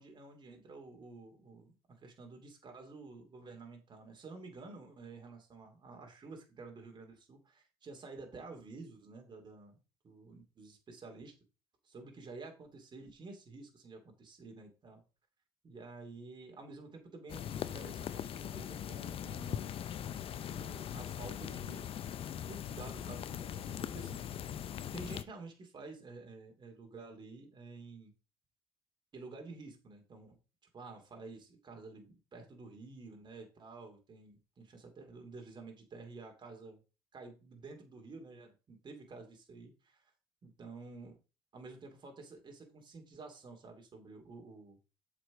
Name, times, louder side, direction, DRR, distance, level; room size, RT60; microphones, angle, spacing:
voice 1, 0.0-9.8 10.0-11.3 11.8-15.0 15.6-19.7 20.5-21.9 22.4-24.2 24.9-28.1 29.1-30.4 30.7-36.8 37.1-40.0 40.4-41.2 41.5-44.8, right 3 dB, 45° right, 3 dB, 2.6 m, -50 dB
sound 1, 17.3-25.2, left 10 dB, 60° left, 0.6 m, -40 dB
7.7 x 5.1 x 5.0 m, 0.32 s
cardioid pair, 85°, 11 cm